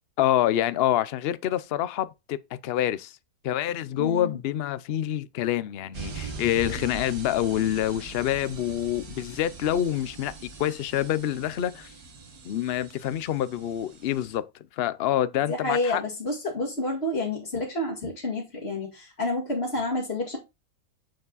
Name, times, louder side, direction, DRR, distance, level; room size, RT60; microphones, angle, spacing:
voice 1, 0.2-2.4 2.6-3.1 3.4-10.3 10.6-11.9 12.4-14.5 14.8-16.0, left 11 dB, 60° left, 0.7 m, -26 dB
voice 2, 4.0-4.4 15.5-20.4, left 2 dB, 40° left, 2.3 m, -29 dB
sound 1, 5.9-14.4, right 4 dB, 70° right, 2.1 m, -42 dB
8.9 x 4.9 x 4.0 m
omnidirectional pair, 1.6 m